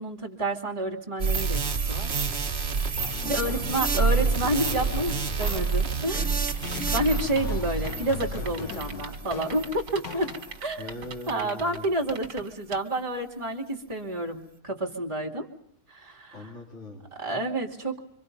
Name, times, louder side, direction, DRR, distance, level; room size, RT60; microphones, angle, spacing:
voice 1, 0.0-1.6 1.9-2.1 3.2-6.3 6.9-10.3 10.6-10.9 11.3-15.5 15.9-16.4 17.2-18.0, right 1 dB, 15° right, 0 dB, 2.6 m, -29 dB
sound 1, 1.2-9.9 10.4-10.5, right 5 dB, 40° right, 1.5 m, -28 dB
sound 2, 3.0-10.8, left 7 dB, 85° left, 1.8 m, -39 dB
voice 2, 3.2-4.3 10.8-11.9 16.3-17.1, left 2 dB, 40° left, 1 dB, 3.6 m, -41 dB
sound 3, 6.5-12.8, right 5 dB, 75° right, 2.3 m, -41 dB
26.5 x 25.0 x 5.4 m, 0.73 s
omnidirectional pair, 1.9 m